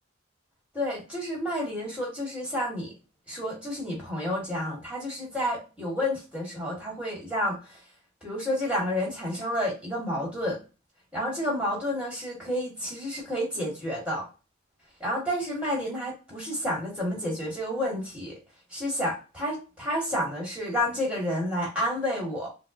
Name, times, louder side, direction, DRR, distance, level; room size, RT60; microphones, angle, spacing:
voice 1, 0.7-2.9 3.3-7.6 8.2-10.6 11.1-14.2 15.0-18.4 18.7-22.5, equal, 5° right, -3 dB, 1.6 m, -30 dB
5.5 x 2.0 x 2.5 m, 0.31 s
head